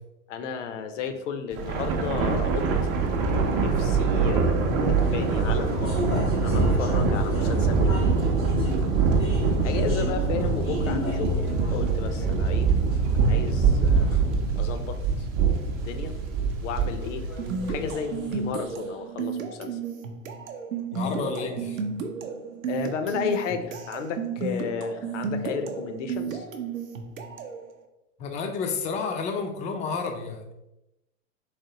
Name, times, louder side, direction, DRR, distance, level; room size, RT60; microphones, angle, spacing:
voice 1, 0.3-2.7 3.3-5.7 6.3-8.0 9.6-11.4 11.7-12.7 13.2-14.1 14.6-15.3 15.8-16.1 16.6-17.3 17.7-19.8 22.7-26.4, left 6 dB, 65° left, 8 dB, 0.6 m, -33 dB
Thunder, 1.5-18.1, right 4 dB, 40° right, 0.6 m, -24 dB
sound 1, 5.0-17.9, right 1 dB, 90° left, 1.2 m, -33 dB
sound 2, 17.4-27.6, right 5 dB, 85° right, 0.6 m, -33 dB
voice 2, 20.9-21.8 28.2-30.5, left 5 dB, 20° left, 4 dB, 0.3 m, -30 dB
3.3 x 3.1 x 2.7 m, 0.92 s
hypercardioid pair, 95°, 39 cm